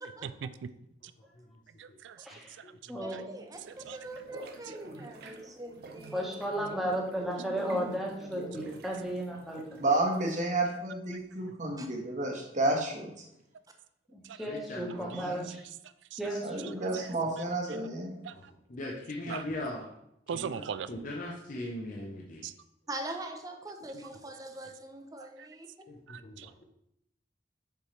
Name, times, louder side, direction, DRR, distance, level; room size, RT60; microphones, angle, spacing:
voice 1, 0.2-0.7 1.0-1.1 1.8-2.3 2.6-3.2 3.7-4.0 4.4-4.7 5.2-5.3 14.2-14.4 15.1-15.3 16.1-16.2 16.9-17.1 17.7-17.8 18.2-18.5 19.2-19.4 20.3-20.9 22.4-22.5 25.2-25.5 26.1-26.5, right 7 dB, 85° right, 14 dB, 0.4 m, -41 dB
voice 2, 2.2-2.6 2.9-3.4 6.1-9.8 14.1-15.7 16.2-17.0, right 1 dB, ahead, -3 dB, 1.3 m, -34 dB
voice 3, 3.0-6.2 11.8-11.9 22.9-25.7, right 2 dB, 20° right, 4 dB, 0.7 m, -43 dB
sound 1, 3.5-10.3, right 2 dB, 60° right, 0.7 m, -46 dB
voice 4, 9.8-13.1 16.4-18.2, right 2 dB, 45° right, 0 dB, 1.3 m, -30 dB
voice 5, 14.5-15.5 16.3-16.4 18.3-18.4 18.7-19.9 20.3-20.5 20.9-22.4 23.9-24.0 25.9-26.6, left 1 dB, 45° left, -1 dB, 0.7 m, -39 dB
6.8 x 4.8 x 3.2 m, 0.79 s
head